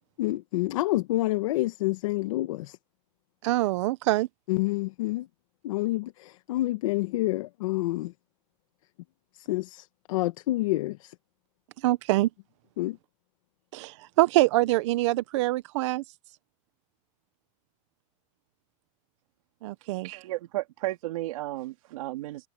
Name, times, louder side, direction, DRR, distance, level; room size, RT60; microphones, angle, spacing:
voice 1, 0.2-2.8 4.5-5.3 5.6-8.1 9.3-11.1 12.8-13.0, left 18 dB, 75° left, 1.4 m, -28 dB
voice 2, 3.4-4.3 11.8-12.3 13.7-16.0 19.6-20.1, right 18 dB, 60° right, 0.8 m, -24 dB
voice 3, 20.0-22.5, right 17 dB, 85° right, 2.5 m, -33 dB
supercardioid pair, 170°, 17 cm